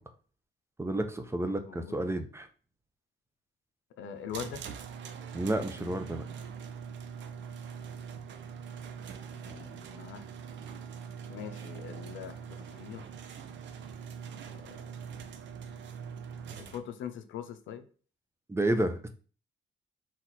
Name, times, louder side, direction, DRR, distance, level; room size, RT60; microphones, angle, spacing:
voice 1, 0.8-2.5 5.3-6.2 18.5-19.1, right 1 dB, 15° right, 7 dB, 0.6 m, -30 dB
voice 2, 1.5-2.0 4.0-4.6 9.4-10.3 11.3-13.0 16.6-17.9, left 8 dB, 75° left, 10 dB, 0.6 m, -42 dB
sound 1, 4.3-16.8, right 7 dB, 65° right, 0.6 m, -43 dB
4.3 x 2.4 x 4.0 m, 0.39 s
cardioid pair, 90°, 20 cm